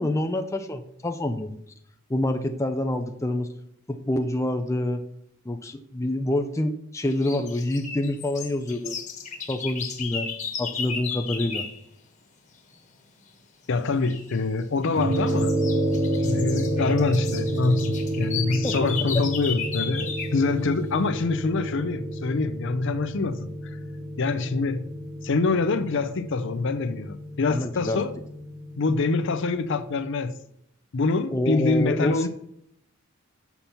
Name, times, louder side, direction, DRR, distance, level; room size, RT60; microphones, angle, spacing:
voice 1, 0.0-1.6 2.1-3.5 3.9-5.0 5.5-9.0 9.5-10.3 10.6-11.7 18.6-18.7 27.5-28.0 31.3-32.3, left 1 dB, 15° left, 6 dB, 0.5 m, -27 dB
sound 1, 7.0-11.8 14.0-14.4 14.8-20.4, left 6 dB, 35° left, 1.4 m, -34 dB
voice 2, 13.7-15.5 16.2-23.8 24.2-24.9 25.2-28.1 28.8-30.4 30.9-32.3, left 3 dB, 60° left, 11 dB, 0.6 m, -25 dB
sound 2, 15.0-29.5, right 1 dB, 85° right, 1.8 m, -30 dB
6.9 x 5.9 x 5.6 m, 0.72 s
head